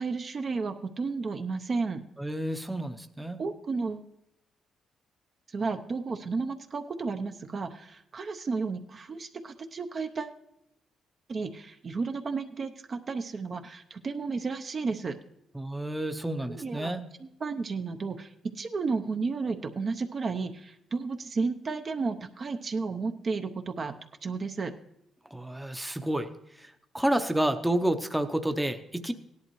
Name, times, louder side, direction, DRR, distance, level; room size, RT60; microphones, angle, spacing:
voice 1, 0.0-2.0 3.4-4.1 5.5-10.3 11.3-15.2 16.4-16.9 17.2-18.3 18.6-23.9 24.2-24.7, right 4 dB, 45° right, 6 dB, 0.7 m, -32 dB
voice 2, 2.2-3.4 15.5-17.0 25.3-26.3 26.6-29.1, right 1 dB, 5° right, 8 dB, 0.7 m, -30 dB
16.5 x 11.0 x 3.1 m, 0.80 s
cardioid pair, 90°, 0 cm